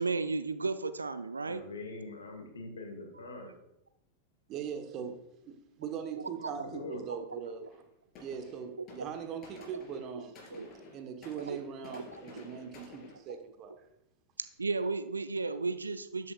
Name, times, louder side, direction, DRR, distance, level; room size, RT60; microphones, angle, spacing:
voice 1, 0.0-1.6 6.1-6.6 7.3-7.7 8.8-8.9 10.1-10.2 10.5-10.7 11.5-11.6 11.9-12.4 13.3-13.4 14.6-16.3, right 3 dB, 80° right, 11 dB, 0.5 m, -34 dB
voice 2, 1.5-3.5 6.5-7.0, left 2 dB, 70° left, 5 dB, 1.7 m, -43 dB
voice 3, 4.5-5.2 5.4-7.8 8.2-10.4 10.9-13.7, right 7 dB, 35° right, 6 dB, 1.2 m, -41 dB
sound 1, 7.7-7.9 8.2-13.2, left 3 dB, 35° left, 3.1 m, -51 dB
12.5 x 8.3 x 2.4 m, 0.86 s
figure-of-eight pair, 90°, 0 cm